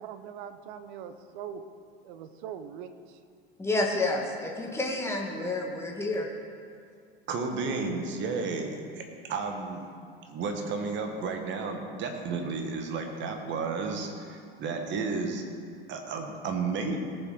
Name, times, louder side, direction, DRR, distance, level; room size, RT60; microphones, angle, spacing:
voice 1, 0.0-1.6 2.0-3.2, right 8 dB, 55° right, 9 dB, 1.0 m, -42 dB
voice 2, 3.6-6.3, left 2 dB, 10° left, 0 dB, 1.8 m, -29 dB
voice 3, 7.3-9.9 10.3-15.4 15.9-17.0, right 4 dB, 40° right, 4 dB, 1.9 m, -32 dB
18.5 x 7.2 x 5.1 m, 2.3 s
figure-of-eight pair, 75°, 30 cm